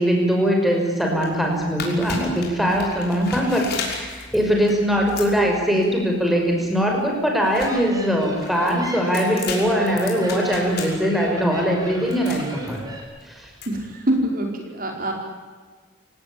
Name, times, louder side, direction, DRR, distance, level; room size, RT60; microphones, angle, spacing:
voice 1, 0.0-12.8 13.3-13.5, equal, ahead, 0 dB, 5.8 m, -21 dB
sound 1, 1.1-13.7, left 4 dB, 50° left, 5.9 m, -36 dB
sound 2, 7.3-13.0, right 1 dB, 20° right, 5.2 m, -36 dB
voice 2, 13.7-15.1, right 1 dB, 45° right, 2 dB, 4.8 m, -24 dB
29.0 x 18.0 x 8.7 m, 1.4 s
head